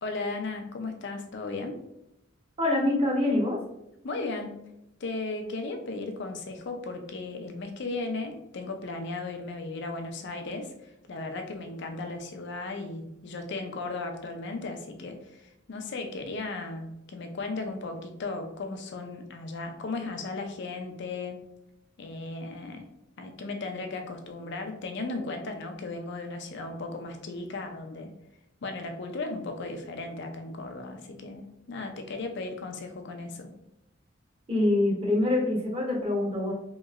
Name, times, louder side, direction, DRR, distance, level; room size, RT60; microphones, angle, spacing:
voice 1, 0.0-1.8 4.0-4.6 5.0-21.4 22.0-22.9 23.2-28.1 28.6-33.5, left 3 dB, 60° left, 5 dB, 0.5 m, -36 dB
voice 2, 2.6-3.6 34.5-36.5, left 2 dB, 30° right, -3 dB, 0.9 m, -25 dB
2.9 x 2.8 x 2.4 m, 0.83 s
head